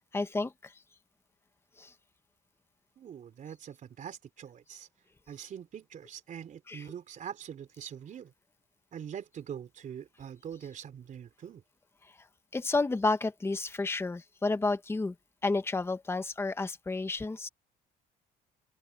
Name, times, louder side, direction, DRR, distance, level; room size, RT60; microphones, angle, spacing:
voice 1, 0.1-0.7 1.8-1.9 6.7-6.8 12.5-15.1 15.4-17.5, left 3 dB, 15° left, 1.1 m, -31 dB
voice 2, 3.0-4.9 5.3-8.3 8.9-11.6, right 8 dB, 50° right, 3.6 m, -43 dB
cardioid pair, 110°, 17 cm